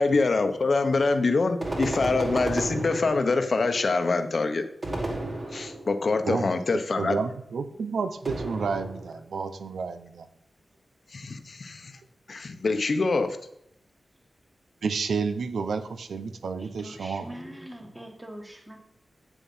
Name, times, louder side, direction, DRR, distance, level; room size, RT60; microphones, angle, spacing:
voice 1, 0.0-4.6 5.5-7.2 11.1-11.9 12.3-13.4, left 3 dB, 45° left, 8 dB, 1.0 m, -25 dB
sound 1, 1.6-3.6 4.8-6.0 8.2-9.2, right 1 dB, 30° right, 2.3 m, -32 dB
voice 2, 6.3-6.6 7.0-10.3 14.8-17.3, right 5 dB, 85° right, 10 dB, 0.9 m, -30 dB
voice 3, 16.6-18.8, right 1 dB, 10° right, 3 dB, 1.6 m, -42 dB
9.0 x 7.3 x 5.6 m, 0.77 s
wide cardioid pair, 170°, 0 cm